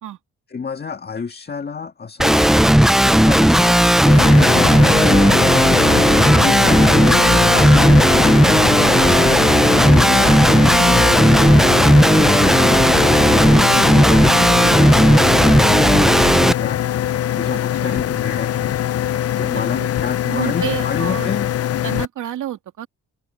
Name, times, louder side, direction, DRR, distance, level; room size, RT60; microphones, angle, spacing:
voice 1, 0.5-2.5 3.0-3.8 4.1-5.3 6.4-8.4 9.0-9.4 9.8-11.7 12.4-12.8 13.3-15.6 15.9-16.8 17.4-18.8 19.4-21.5, left 5 dB, 30° left, 1.8 m, -29 dB
Guitar, 2.2-16.5, equal, ahead, 0.5 m, -13 dB
sound 1, 4.1-22.0, left 11 dB, 50° left, 0.6 m, -22 dB
voice 2, 5.8-6.1 8.8-9.0 17.5-18.0 19.5-19.9 20.2-21.3 21.8-22.9, right 12 dB, 75° right, 2.6 m, -30 dB
cardioid pair, 105°, 31 cm